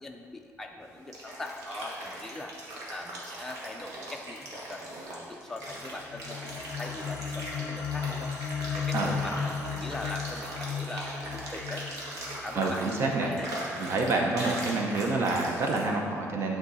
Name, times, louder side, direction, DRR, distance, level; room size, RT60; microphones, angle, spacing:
voice 1, 0.0-6.4 6.8-8.3 8.7-11.9 12.4-13.5, left 2 dB, 5° left, 1 dB, 0.4 m, -41 dB
sound 1, 0.8-15.9, right 1 dB, 75° right, 1.3 m, -39 dB
sound 2, 5.7-14.1, left 7 dB, 80° left, 0.4 m, -36 dB
voice 2, 12.6-13.3 13.8-16.6, right 3 dB, 50° right, 1 dB, 0.7 m, -28 dB
8.9 x 3.7 x 4.0 m, 2.3 s
cardioid pair, 165°, 6 cm